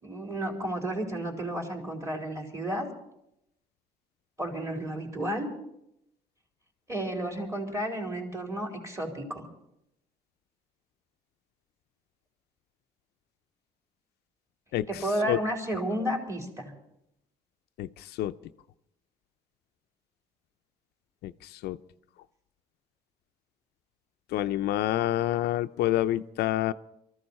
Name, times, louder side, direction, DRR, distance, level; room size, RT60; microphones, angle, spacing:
voice 1, 0.0-2.9 4.4-5.5 6.9-9.5 14.9-16.7, right 1 dB, 20° right, 2 dB, 4.2 m, -32 dB
voice 2, 24.3-26.7, left 14 dB, 75° left, 11 dB, 0.5 m, -27 dB
23.5 x 14.5 x 4.3 m, 0.80 s
cardioid pair, 110°, 17 cm